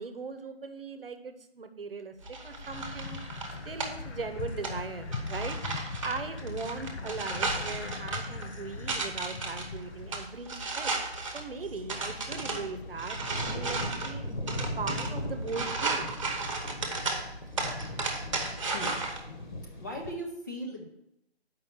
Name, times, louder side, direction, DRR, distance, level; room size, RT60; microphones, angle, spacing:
voice 1, 0.0-3.2 3.6-5.6 6.0-10.9 11.3-13.2 13.5-16.1, right 4 dB, 60° right, 8 dB, 1.0 m, -39 dB
sound 1, 2.2-19.2, right 3 dB, 30° right, 1.1 m, -35 dB
sound 2, 2.5-20.1, left 1 dB, 45° left, 1.3 m, -42 dB
sound 3, 2.7-10.2, left 4 dB, 85° left, 0.8 m, -40 dB
voice 2, 19.8-20.9, equal, 15° left, -2 dB, 0.7 m, -38 dB
7.1 x 5.4 x 7.3 m, 0.83 s
hypercardioid pair, 170°, 32 cm